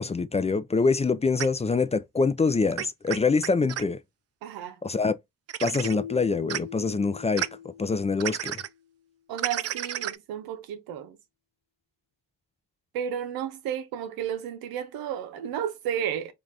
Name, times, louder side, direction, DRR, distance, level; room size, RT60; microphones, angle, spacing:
voice 1, 0.0-4.0 4.8-5.1 5.6-7.5 7.8-8.6, left 4 dB, 20° left, 0.4 m, -25 dB
sound 1, 1.4-1.5 2.7-3.8 5.5-5.9 6.5-6.6 7.4-7.5 8.2-8.7 9.4-10.2, right 11 dB, 45° right, 0.4 m, -31 dB
voice 2, 4.4-4.8 9.3-11.2 12.9-16.3, right 9 dB, 90° right, 0.7 m, -32 dB
Keyboard (musical), 5.8-8.7, left 9 dB, 85° left, 1.0 m, -41 dB
3.2 x 2.6 x 2.5 m
supercardioid pair, 50°, 35 cm